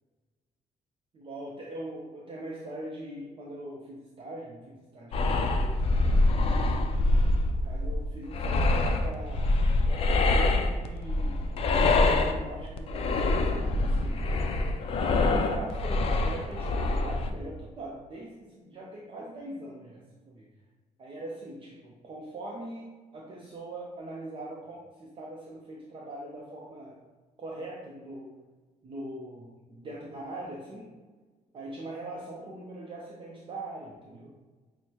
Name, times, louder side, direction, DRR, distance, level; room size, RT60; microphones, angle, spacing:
voice 1, 1.1-6.6 7.4-9.5 9.8-14.5 15.3-20.4 21.0-27.0 27.4-28.4 28.8-30.9 31.5-34.3, right 1 dB, 40° right, -4 dB, 0.6 m, -41 dB
sound 1, 5.1-17.3, left 2 dB, 45° left, 0.4 m, -25 dB
6.1 x 2.1 x 2.8 m, 1.3 s
cardioid pair, 130°, 14 cm